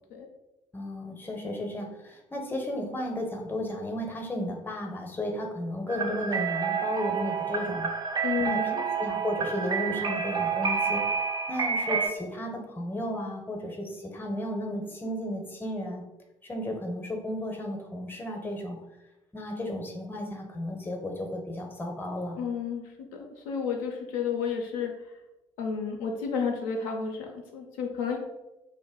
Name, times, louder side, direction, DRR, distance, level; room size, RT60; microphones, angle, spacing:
voice 1, 0.7-7.9 8.4-11.0 11.5-16.0 16.4-18.8 19.3-22.4, left 1 dB, 15° left, 3 dB, 0.6 m, -34 dB
sound 1, 5.9-12.1, right 6 dB, 25° right, 0.4 m, -29 dB
voice 2, 8.2-8.8 22.4-24.9 25.6-28.2, left 6 dB, 65° left, 2 dB, 0.4 m, -31 dB
2.5 x 2.2 x 3.4 m, 1.0 s
figure-of-eight pair, 45°, 16 cm